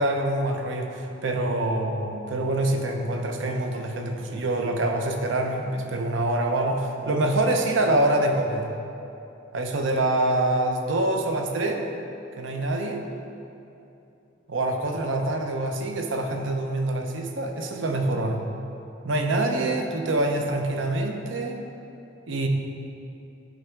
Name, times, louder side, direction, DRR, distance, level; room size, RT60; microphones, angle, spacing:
voice 1, 0.0-8.7 9.5-11.8 12.4-13.0 14.5-18.4 19.0-21.6 22.3-22.5, right 1 dB, 70° right, 3 dB, 0.6 m, -25 dB
10.0 x 3.4 x 4.6 m, 2.8 s
head